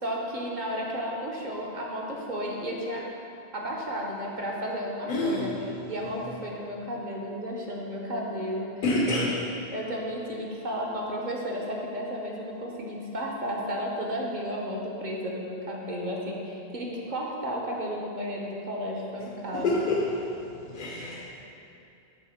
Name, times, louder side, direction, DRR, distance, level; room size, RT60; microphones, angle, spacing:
voice 1, 0.0-3.0 3.5-5.6 5.9-9.3 9.7-19.8, equal, 50° right, -2 dB, 1.1 m, -33 dB
voice 2, 5.1-5.5 8.8-9.3 19.5-20.4 20.7-21.3, left 2 dB, 50° left, -4 dB, 0.9 m, -27 dB
7.7 x 4.1 x 6.5 m, 2.7 s
omnidirectional pair, 1.1 m